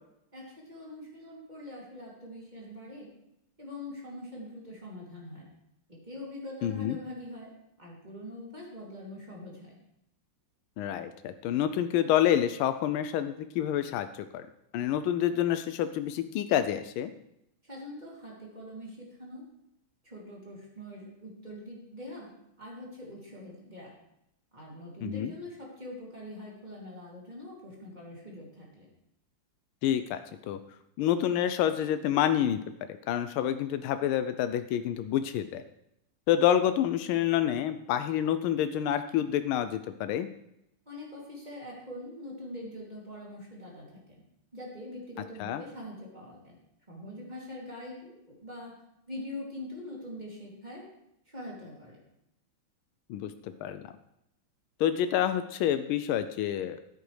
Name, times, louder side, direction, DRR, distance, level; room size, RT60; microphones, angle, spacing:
voice 1, 0.3-3.1 3.6-5.5 5.9-7.5 7.8-9.8 17.6-19.5 20.0-22.3 22.6-23.9 24.5-28.9 40.9-44.2 44.5-46.6 46.9-48.7 49.1-50.9 51.3-52.0, left 1 dB, 20° right, -4 dB, 2.9 m, -43 dB
voice 2, 6.6-7.0 10.8-14.4 14.7-17.1 25.0-25.3 29.8-30.2 30.5-30.6 31.0-32.6 33.1-35.6 36.3-40.3 45.4-45.6 53.1-53.9 54.8-56.8, left 10 dB, 85° left, 10 dB, 1.4 m, -28 dB
13.5 x 9.1 x 3.3 m, 0.81 s
omnidirectional pair, 2.3 m